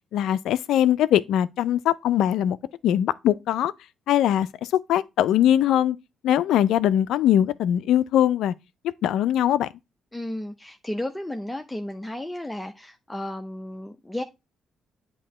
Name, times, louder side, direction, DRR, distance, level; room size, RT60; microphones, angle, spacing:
voice 1, 0.1-2.6 2.8-3.7 4.1-6.0 6.2-8.5 9.0-9.7, left 11 dB, 75° left, 0.3 m, -21 dB
voice 2, 10.1-14.2, left 1 dB, 10° left, 0.6 m, -33 dB
8.3 x 2.8 x 4.2 m
supercardioid pair, 55°, 0 cm